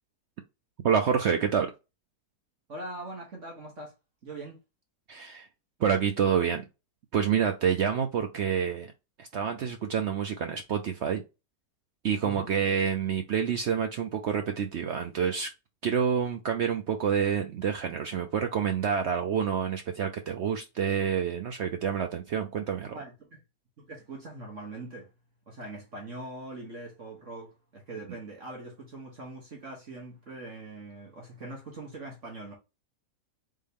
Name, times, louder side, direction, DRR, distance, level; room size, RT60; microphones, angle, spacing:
voice 1, 0.8-1.7 5.1-5.5 5.8-6.6 7.1-8.9 9.2-11.2 12.0-15.5 15.8-22.9, right 7 dB, 80° right, 0.6 m, -28 dB
voice 2, 2.7-3.9 4.2-4.6 12.2-12.5 22.9-23.4 23.8-25.1 25.5-32.5, right 2 dB, 50° right, 1.5 m, -42 dB
4.1 x 3.7 x 3.5 m
omnidirectional pair, 1.8 m